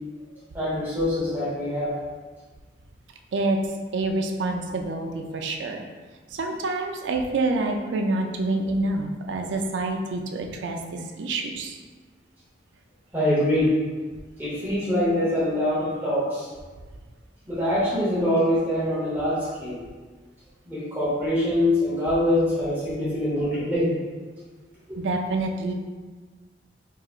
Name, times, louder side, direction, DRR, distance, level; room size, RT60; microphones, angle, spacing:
voice 1, 0.5-1.9 13.1-13.7 14.4-16.5 17.5-19.8 20.7-23.9 24.9-25.0, left 1 dB, 10° right, -9 dB, 0.9 m, -24 dB
voice 2, 3.9-5.8 6.3-11.8 25.0-25.7, right 2 dB, 85° right, 3 dB, 0.4 m, -27 dB
4.7 x 2.9 x 2.4 m, 1.4 s
head